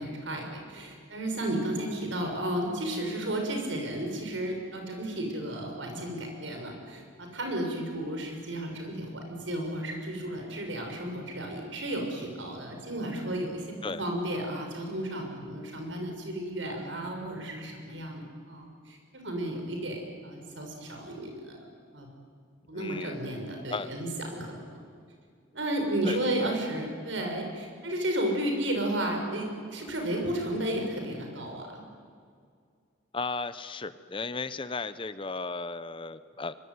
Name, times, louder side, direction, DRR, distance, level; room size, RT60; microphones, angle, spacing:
voice 1, 0.0-21.6 21.9-22.1 22.7-24.8 25.5-31.8, right 1 dB, 75° right, 2 dB, 6.3 m, -33 dB
voice 2, 22.7-23.2 23.7-23.9 26.0-26.6 33.1-36.5, left 3 dB, 25° left, 14 dB, 0.7 m, -35 dB
23.5 x 23.5 x 9.5 m, 2.1 s
head